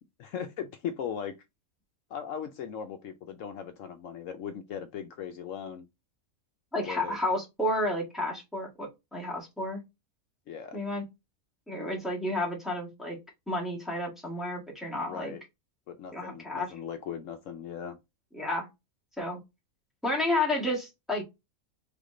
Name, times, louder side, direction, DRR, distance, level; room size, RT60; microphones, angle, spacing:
voice 1, 0.2-1.4 2.1-5.9 6.8-7.2 10.5-10.8 15.1-15.4 15.9-18.0, left 8 dB, 70° left, 0.9 m, -38 dB
voice 2, 6.7-9.8 10.7-11.0 11.7-13.2 13.5-15.3 16.1-16.7 18.3-18.7 19.2-19.4 20.0-21.2, left 1 dB, ahead, 1.5 m, -31 dB
3.8 x 3.6 x 3.6 m
omnidirectional pair, 1.5 m